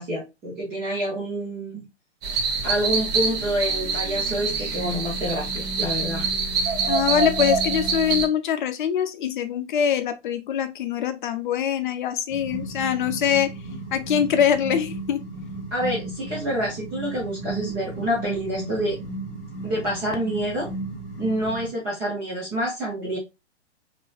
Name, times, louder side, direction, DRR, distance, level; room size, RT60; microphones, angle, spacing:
voice 1, 0.0-1.8 2.6-6.3 15.7-19.0 19.6-20.7 21.2-23.2, equal, 10° right, 0.3 m, -27 dB
sound 1, 2.2-8.3, right 4 dB, 35° right, 1.1 m, -25 dB
voice 2, 6.9-13.5 13.9-15.2, left 8 dB, 45° left, 0.6 m, -23 dB
sound 2, 12.3-21.7, right 2 dB, 15° left, 1.6 m, -35 dB
4.0 x 2.6 x 2.3 m
figure-of-eight pair, 115°, 35 cm